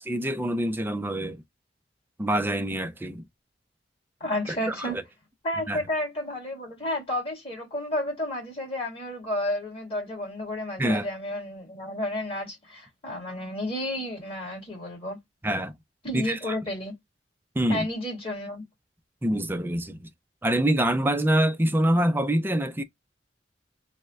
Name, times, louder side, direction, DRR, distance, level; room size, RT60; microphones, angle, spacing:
voice 1, 0.0-1.4 2.2-3.2 4.5-5.0 5.7-5.8 10.8-11.1 15.4-15.7 16.1-16.4 17.6-17.8 19.2-20.1 20.4-22.8, right 1 dB, 10° right, 0.4 m, -25 dB
voice 2, 4.2-5.0 5.4-15.2 16.0-16.9 17.7-18.6, left 1 dB, 30° left, 2.1 m, -31 dB
3.2 x 2.1 x 3.3 m
head